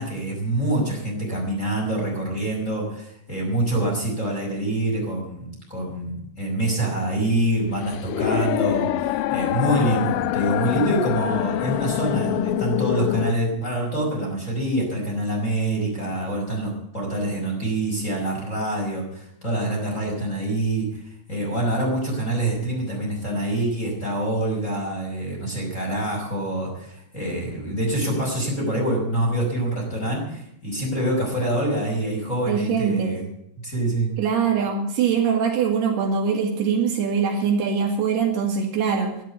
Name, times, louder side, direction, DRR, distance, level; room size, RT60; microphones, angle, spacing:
voice 1, 0.0-21.0 21.3-33.2 33.6-34.1, right 1 dB, 15° left, -1 dB, 5.2 m, -25 dB
sound 1, 7.3-13.3, left 14 dB, 85° left, 2.9 m, -25 dB
voice 2, 32.5-33.1 34.2-39.2, right 6 dB, 70° right, 1 dB, 4.0 m, -22 dB
12.0 x 11.5 x 8.2 m, 0.76 s
omnidirectional pair, 5.0 m